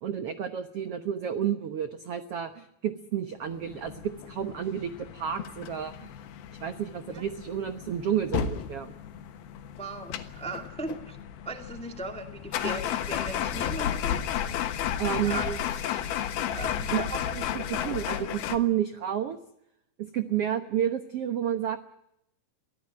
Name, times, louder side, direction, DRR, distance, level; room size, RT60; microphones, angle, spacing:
voice 1, 0.0-6.1 6.6-8.9 15.0-15.6 16.9-17.0 17.3-19.4 20.0-21.8, right 9 dB, 80° right, 9 dB, 1.3 m, -30 dB
sound 1, 3.6-18.6, left 10 dB, 75° left, 3.2 m, -33 dB
voice 2, 9.8-11.2 11.4-14.2 15.2-16.0 16.5-17.1 17.7-18.0, right 2 dB, 5° left, 5 dB, 0.9 m, -38 dB
24.0 x 16.5 x 8.7 m, 0.80 s
omnidirectional pair, 4.5 m